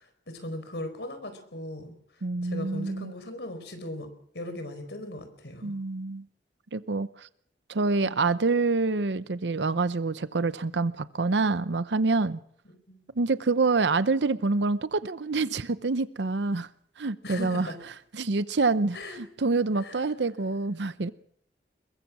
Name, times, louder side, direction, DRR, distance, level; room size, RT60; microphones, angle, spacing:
voice 1, 0.0-4.1 4.3-5.8 8.0-8.3 12.7-13.1 17.2-17.7 18.9-19.2 19.8-20.1, left 1 dB, 80° left, 4.5 m, -39 dB
voice 2, 2.2-3.1 5.6-6.3 6.7-7.3 7.7-12.4 13.2-16.7 17.0-17.7 18.1-21.1, right 3 dB, 90° right, 0.7 m, -26 dB
22.0 x 21.5 x 6.1 m
head